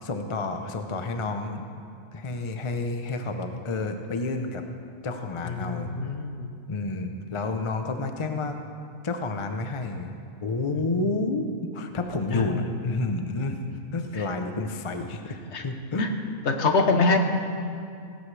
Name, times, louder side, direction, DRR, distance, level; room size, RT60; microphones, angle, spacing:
voice 1, 0.0-1.6 2.1-4.6 5.0-5.9 6.7-8.6 9.0-10.1 10.4-11.5 11.7-13.6 13.9-15.3 15.6-16.0 16.6-16.7, left 3 dB, 30° left, 5 dB, 0.6 m, -30 dB
voice 2, 5.4-6.5 10.8-10.9 12.3-12.7 14.1-14.2 15.5-15.6 16.0-16.1 16.4-17.2, left 3 dB, 55° left, 5 dB, 1.2 m, -25 dB
17.5 x 16.0 x 3.3 m, 2.4 s
omnidirectional pair, 1.4 m